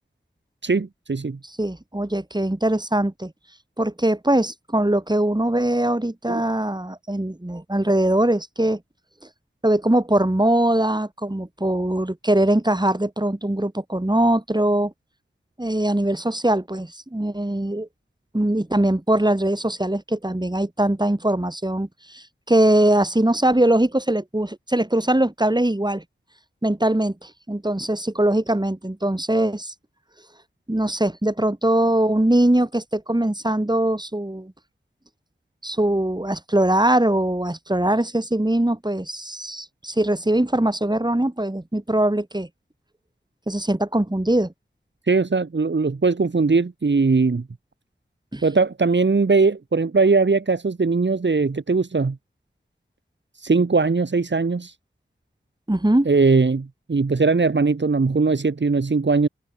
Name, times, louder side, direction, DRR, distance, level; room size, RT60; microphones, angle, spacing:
voice 1, 0.6-1.4 6.3-6.4 45.1-47.4 48.4-52.2 53.4-54.7 56.0-59.3, right 4 dB, 65° right, 1.7 m, -20 dB
voice 2, 1.4-3.3 3.8-8.8 9.6-14.9 15.6-17.9 18.3-26.0 26.6-29.7 30.7-34.5 35.6-42.5 43.5-44.5 48.3-48.4 55.7-56.1, right 1 dB, 20° right, 7.5 m, -21 dB
wide cardioid pair, 65°, 20 cm